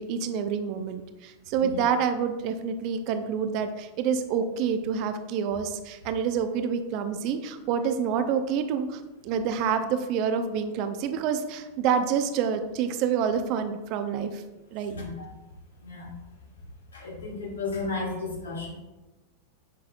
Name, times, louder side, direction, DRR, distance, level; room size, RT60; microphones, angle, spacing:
voice 1, 0.0-14.4 14.7-14.9, right 7 dB, 40° right, 8 dB, 0.5 m, -27 dB
voice 2, 14.9-15.3 15.8-16.2 16.9-18.7, left 3 dB, 70° left, -2 dB, 1.7 m, -34 dB
7.5 x 5.7 x 2.4 m, 1.1 s
figure-of-eight pair, 90°, 0 cm